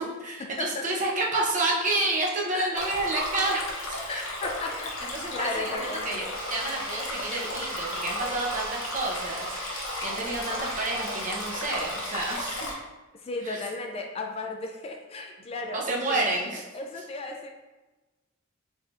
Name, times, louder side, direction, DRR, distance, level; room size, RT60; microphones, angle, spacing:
voice 1, 0.0-4.3 5.1-12.7 13.4-13.6 15.7-16.6, right 2 dB, 40° right, -2 dB, 0.7 m, -30 dB
Stream, 2.8-12.7, left 1 dB, 75° left, 0.8 m, -34 dB
voice 2, 4.1-6.4 13.1-16.4 16.7-17.5, left 3 dB, 30° left, 3 dB, 0.3 m, -35 dB
sound 1, 6.3-12.3, right 3 dB, 75° right, 0.8 m, -41 dB
4.1 x 3.3 x 2.4 m, 1.1 s
head